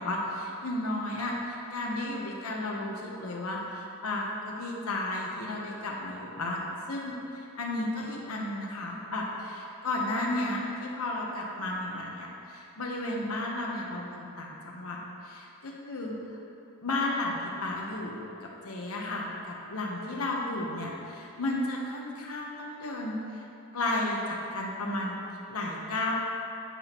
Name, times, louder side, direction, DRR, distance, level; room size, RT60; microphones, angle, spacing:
voice 1, 0.0-16.4 16.8-23.4 23.7-26.1, left 2 dB, 85° left, -2 dB, 1.0 m, -33 dB
9.9 x 8.6 x 3.0 m, 2.7 s
head